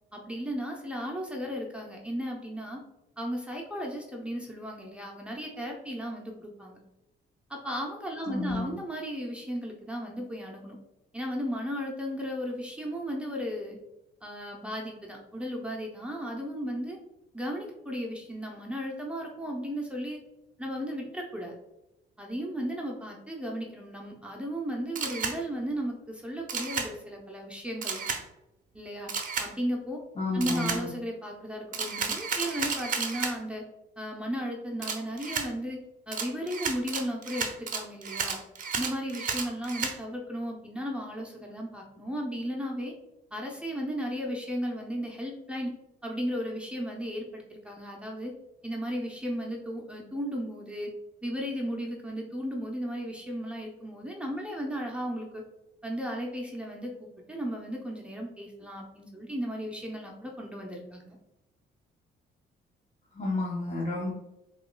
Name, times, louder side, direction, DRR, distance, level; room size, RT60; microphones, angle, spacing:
voice 1, 0.1-2.8 3.2-6.8 7.5-10.8 11.1-13.8 14.2-17.0 17.3-20.2 20.6-21.5 22.2-28.0 28.7-29.1 29.4-30.0 30.3-33.6 34.0-38.4 38.8-42.9 43.3-45.7 46.0-48.3 48.6-50.9 51.2-55.4 55.8-61.2, equal, 5° right, -1 dB, 0.7 m, -35 dB
voice 2, 8.3-8.8 30.2-30.9 63.1-64.1, left 2 dB, 35° left, -4 dB, 0.7 m, -31 dB
Camera, 25.0-25.4 26.5-26.9 27.8-28.2 29.1-29.5 30.4-30.8 31.7-33.3 34.8-35.5 36.1-39.9, right 5 dB, 45° right, 0.6 m, -32 dB
5.1 x 2.4 x 2.2 m, 0.91 s
cardioid pair, 90°, 20 cm